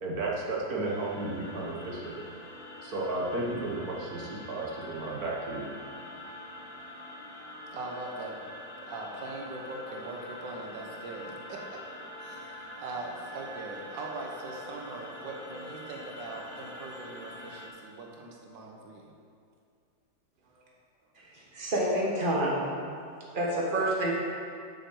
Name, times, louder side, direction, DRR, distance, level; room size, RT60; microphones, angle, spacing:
voice 1, 0.0-2.2 2.8-5.7, right 2 dB, 55° right, -3 dB, 1.6 m, -33 dB
sound 1, 0.8-17.7, left 1 dB, 30° left, 0.6 m, -44 dB
voice 2, 7.7-8.4 8.8-11.8 12.2-19.1 20.4-20.7, right 2 dB, 85° right, 0 dB, 1.7 m, -41 dB
voice 3, 21.2-22.7 23.3-24.1, right 1 dB, 30° right, -4 dB, 1.8 m, -28 dB
7.9 x 6.3 x 6.9 m, 2.3 s
omnidirectional pair, 1.9 m